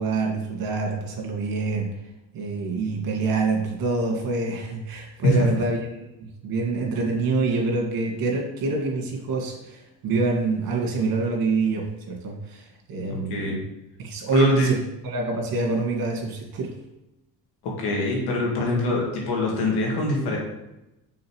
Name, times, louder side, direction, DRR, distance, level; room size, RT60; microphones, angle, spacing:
voice 1, 0.0-1.9 2.3-6.0 6.4-13.6 14.0-14.8 15.0-16.7, right 3 dB, 65° right, 0 dB, 2.0 m, -26 dB
voice 2, 14.3-14.7 17.6-20.4, left 2 dB, 80° left, -2 dB, 2.2 m, -24 dB
6.4 x 3.9 x 4.7 m, 0.93 s
cardioid pair, 105°, 38 cm